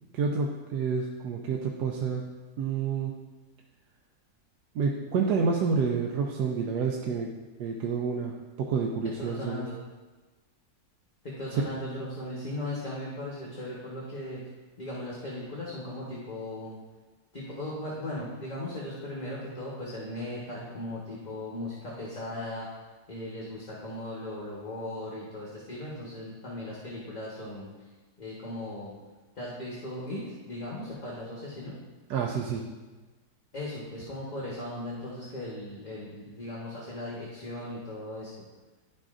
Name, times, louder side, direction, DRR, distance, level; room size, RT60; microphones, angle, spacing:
voice 1, 0.1-2.3 2.6-3.1 4.7-9.7 11.5-11.6 32.1-32.7, right 5 dB, 85° right, 1 dB, 1.2 m, -29 dB
voice 2, 9.2-9.7 11.2-14.4 14.8-16.7 17.3-22.7 23.1-27.7 28.2-29.0 29.3-31.8 33.5-38.3, left 1 dB, 30° left, -5 dB, 1.2 m, -37 dB
11.5 x 4.9 x 2.5 m, 1.2 s
omnidirectional pair, 1.7 m